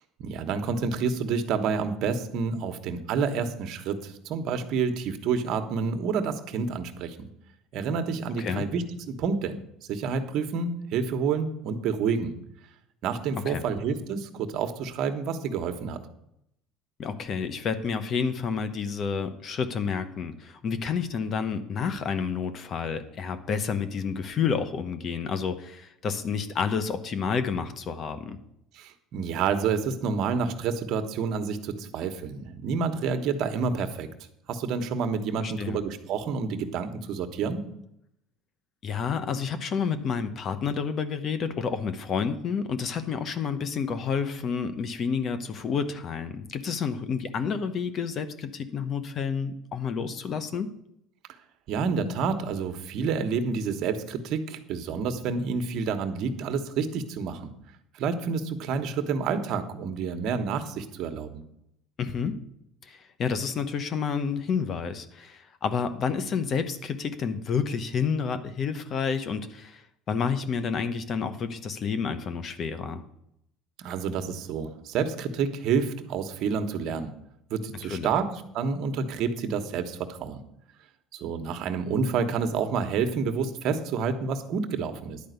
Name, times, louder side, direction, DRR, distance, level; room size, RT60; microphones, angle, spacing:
voice 1, 0.2-7.3 7.7-9.5 9.9-12.3 13.0-16.0 28.7-34.1 34.5-37.6 51.7-57.5 57.9-61.4 73.8-77.1 77.5-78.3 78.5-80.4 81.2-85.2, right 5 dB, 60° right, 8 dB, 1.2 m, -29 dB
voice 2, 17.0-28.4 35.4-35.8 38.8-50.7 62.0-62.4 62.8-73.0 77.9-78.1, left 6 dB, 40° left, 11 dB, 1.0 m, -29 dB
10.5 x 5.1 x 8.1 m, 0.77 s
cardioid pair, 120°, 0 cm